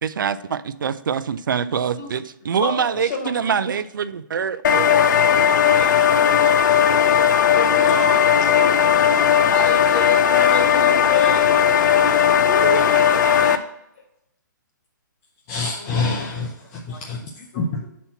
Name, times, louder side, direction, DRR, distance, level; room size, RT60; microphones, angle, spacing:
voice 1, 0.0-5.2, right 7 dB, 80° right, 12 dB, 0.4 m, -25 dB
voice 2, 2.6-3.6 5.7-8.7 9.5-11.6 12.4-13.7 15.8-15.9 16.9-17.0 17.5-17.6, left 2 dB, 45° left, 0 dB, 2.1 m, -30 dB
sound 1, 4.6-13.6, left 8 dB, 65° left, 0.6 m, -16 dB
voice 3, 15.5-17.8, left 3 dB, 20° left, -1 dB, 0.6 m, -27 dB
5.8 x 4.1 x 5.6 m, 0.83 s
hypercardioid pair, 160°, 11 cm